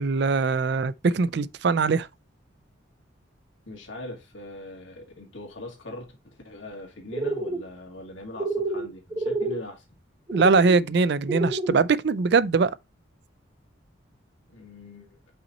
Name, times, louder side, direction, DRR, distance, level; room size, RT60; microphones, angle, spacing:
voice 1, 0.0-2.1 10.3-12.7, right 4 dB, 60° right, 0.4 m, -22 dB
voice 2, 3.7-9.8 14.5-15.2, left 1 dB, 80° left, 2.0 m, -41 dB
sound 1, 7.1-7.6 8.4-8.9 9.1-9.6 10.3-10.7 11.3-11.8, right 2 dB, 20° right, 1.1 m, -28 dB
5.6 x 4.1 x 4.2 m
head